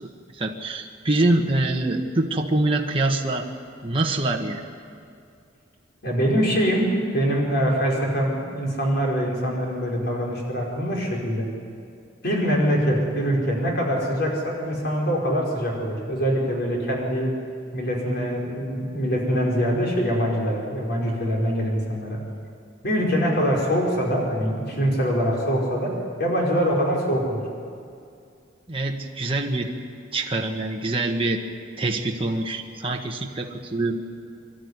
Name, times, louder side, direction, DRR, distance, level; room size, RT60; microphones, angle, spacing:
voice 1, 0.0-3.5 3.8-4.6 28.7-29.7 30.1-31.4 31.8-34.0, right 2 dB, 30° right, 1 dB, 1.5 m, -25 dB
voice 2, 6.0-6.9 7.1-11.5 12.2-17.3 17.7-22.2 22.8-25.9 26.2-27.4, equal, 60° left, -2 dB, 5.3 m, -24 dB
25.0 x 12.5 x 9.8 m, 2.4 s
head